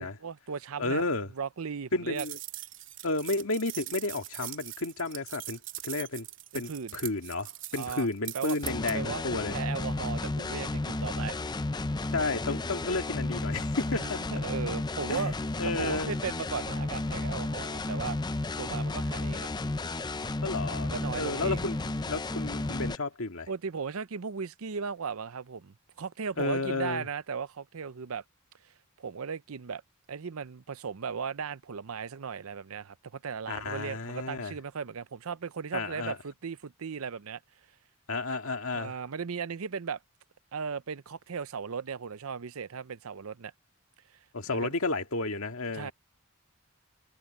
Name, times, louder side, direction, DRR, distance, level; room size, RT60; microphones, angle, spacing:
voice 1, 0.0-1.0 1.4-2.3 6.5-6.9 7.8-8.1 8.3-8.6 8.9-11.6 14.0-15.3 15.8-18.2 18.6-19.5 20.8-21.8 23.5-28.2 28.6-29.8 30.1-37.4 38.7-40.0 40.5-43.5 44.5-44.7 45.7-45.9, right 6 dB, 75° right, 0.6 m, -37 dB
voice 2, 0.8-1.3 1.9-2.4 3.0-6.3 6.5-9.6 12.1-14.3 15.1-15.2 15.6-16.1 20.4-23.5 26.4-27.1 33.5-34.5 35.7-36.2 38.1-39.0 44.3-45.9, left 3 dB, 70° left, 1.9 m, -32 dB
sound 1, 2.2-8.9, right 15 dB, 55° right, 2.7 m, -41 dB
sound 2, 8.6-23.0, left 2 dB, 20° left, 0.5 m, -33 dB
head